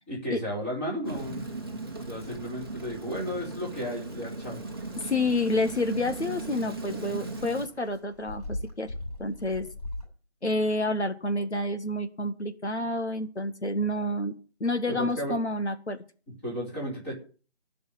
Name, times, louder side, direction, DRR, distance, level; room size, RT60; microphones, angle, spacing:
voice 1, 0.1-1.5 2.1-4.6 12.8-12.9 14.9-15.4 16.4-17.2, equal, 10° left, -4 dB, 3.3 m, -34 dB
Rain, 1.0-7.7, right 2 dB, 20° right, 1.2 m, -37 dB
sound 1, 4.0-10.0, left 1 dB, 35° left, 7.9 m, -42 dB
voice 2, 5.0-8.9 9.2-9.7 10.4-14.3 14.6-16.0, left 1 dB, 80° left, 8 dB, 1.8 m, -29 dB
15.5 x 5.6 x 9.5 m, 0.39 s
figure-of-eight pair, 170°, 33 cm